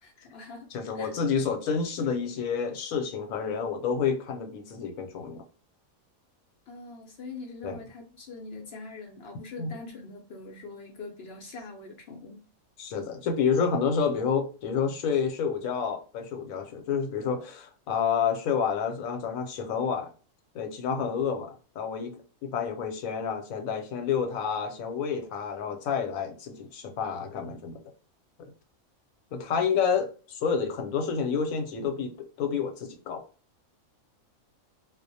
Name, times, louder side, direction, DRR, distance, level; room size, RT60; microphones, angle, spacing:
voice 1, 0.0-0.7 0.9-1.1 6.7-12.4, left 3 dB, 60° left, 0.7 m, -43 dB
voice 2, 0.7-5.4 7.6-7.8 9.6-9.7 12.8-20.1 20.5-22.1 22.4-27.8 29.3-33.2, left 6 dB, 85° left, 1.0 m, -29 dB
2.4 x 2.0 x 2.6 m
omnidirectional pair, 1.4 m